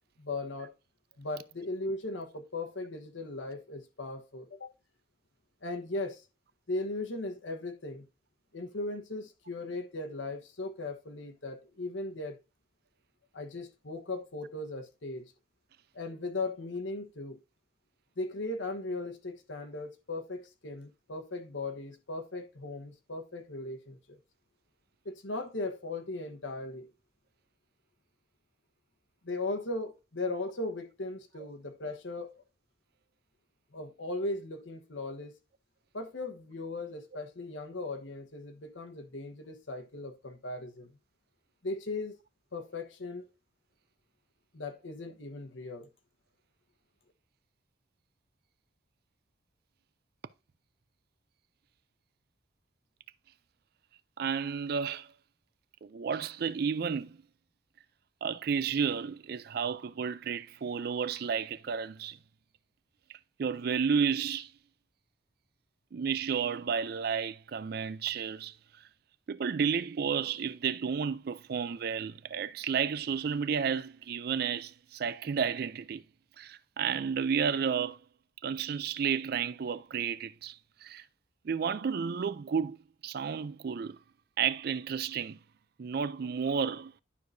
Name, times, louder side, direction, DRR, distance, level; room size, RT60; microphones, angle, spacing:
voice 1, 0.2-0.7 1.2-4.7 5.6-6.2 6.7-8.1 8.5-12.4 13.3-15.3 15.9-17.4 18.2-24.2 25.0-26.9 29.2-32.3 33.7-35.3 35.9-40.9 41.6-42.2 42.5-43.3 44.5-45.9, left 2 dB, 75° left, 1.2 m, -38 dB
voice 2, 54.2-55.1 55.8-57.2 58.2-62.2 63.4-64.5 65.9-68.5 69.3-76.0 76.4-78.0 78.4-81.0 81.4-82.8 83.0-84.0 84.4-85.4 85.8-86.9, right 6 dB, 55° right, 0.4 m, -32 dB
11.5 x 4.8 x 2.6 m
head